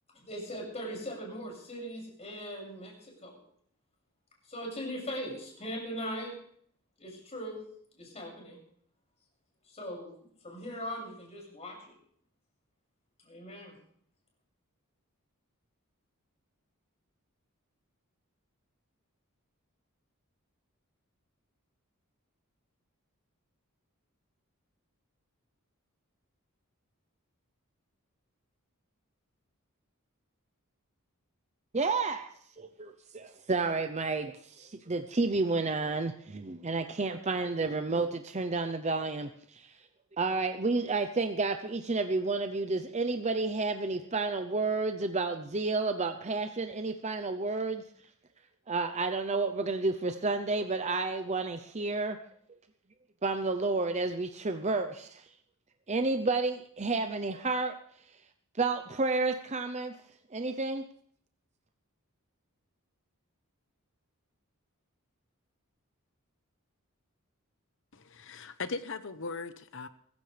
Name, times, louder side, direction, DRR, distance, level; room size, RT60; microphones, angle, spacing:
voice 1, 0.1-3.4 4.5-6.3 7.0-7.6 7.9-8.6 9.7-10.1 10.4-11.9 13.2-13.7, equal, 30° left, -1 dB, 6.5 m, -40 dB
voice 2, 31.7-32.3 32.6-39.7 40.2-47.8 48.7-52.2 53.2-55.2 55.9-57.8 58.6-59.9 60.3-60.8, right 3 dB, 30° right, 7 dB, 0.7 m, -31 dB
voice 3, 67.9-69.9, left 4 dB, 60° left, 12 dB, 1.0 m, -39 dB
23.5 x 15.0 x 3.4 m, 0.62 s
head